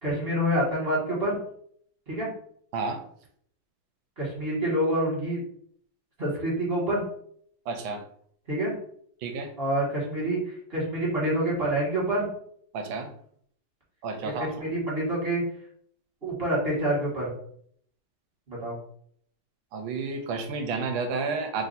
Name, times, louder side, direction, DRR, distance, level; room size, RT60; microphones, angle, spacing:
voice 1, 0.0-1.4 2.1-2.3 4.2-5.4 6.2-7.1 8.5-8.7 9.6-12.3 14.2-15.4 16.2-17.3 18.5-18.8, right 1 dB, 30° right, -5 dB, 1.5 m, -27 dB
voice 2, 7.7-8.0 9.2-9.5 12.7-13.1 14.0-14.5 19.7-21.7, right 4 dB, 75° right, 6 dB, 1.4 m, -31 dB
3.4 x 2.7 x 4.0 m, 0.63 s
omnidirectional pair, 2.3 m